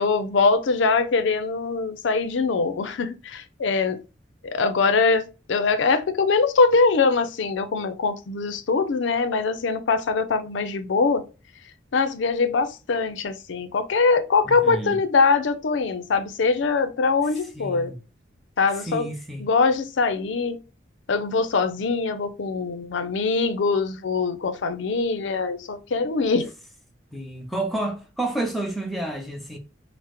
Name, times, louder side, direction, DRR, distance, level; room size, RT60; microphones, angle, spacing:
voice 1, 0.0-4.0 4.4-11.2 11.9-17.9 18.6-19.1 19.4-20.6 21.1-26.5, left 4 dB, 80° left, 0.5 m, -22 dB
voice 2, 14.4-15.0 17.6-18.0 18.9-19.5 27.1-29.6, right 2 dB, ahead, 0.6 m, -30 dB
3.4 x 2.0 x 2.9 m
head